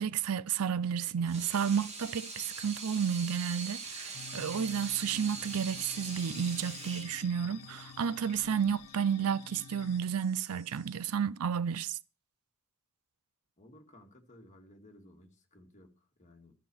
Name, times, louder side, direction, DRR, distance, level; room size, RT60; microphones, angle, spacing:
voice 1, 0.0-12.0, right 7 dB, 80° right, 0.5 m, -32 dB
Water tap faucet / Sink (filling or washing), 1.1-9.1, right 4 dB, 30° right, 2.0 m, -43 dB
sound 1, 4.1-10.0, left 8 dB, 85° left, 0.5 m, -50 dB
sound 2, 7.6-11.1, right 1 dB, 15° right, 7.4 m, -65 dB
voice 2, 13.6-16.5, left 1 dB, 35° left, 2.2 m, -57 dB
13.0 x 5.9 x 7.0 m
head